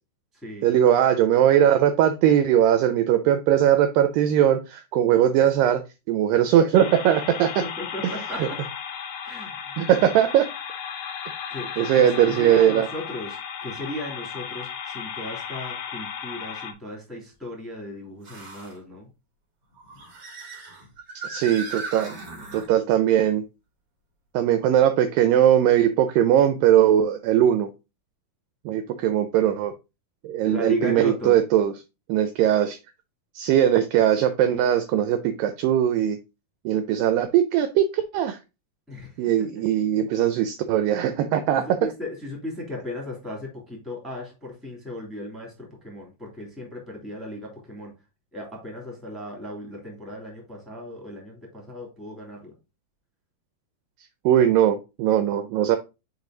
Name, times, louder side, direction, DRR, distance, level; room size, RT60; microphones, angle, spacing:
voice 1, 0.6-5.8 6.1-7.5 8.4-8.5 9.8-10.5 11.8-12.9 21.3-22.2 22.5-23.4 24.3-27.7 28.7-29.7 30.2-31.7 32.1-32.8 33.4-36.2 36.7-38.4 39.2-41.6 54.3-55.8, right 10 dB, 80° right, 9 dB, 2.0 m, -20 dB
sound 1, 6.7-16.7, left 8 dB, 90° left, 1.4 m, -35 dB
voice 2, 7.6-8.6 9.2-9.7 11.5-19.1 30.4-31.4 38.9-39.6 41.6-47.9 48.3-52.5, left 1 dB, ahead, -1 dB, 1.8 m, -36 dB
sound 2, 8.3-8.5 9.1-9.2 11.3-11.4 14.9-15.0 18.2-18.8 19.7-22.7, right 4 dB, 60° right, 1.0 m, -38 dB
5.2 x 4.9 x 3.8 m, 0.27 s
omnidirectional pair, 4.4 m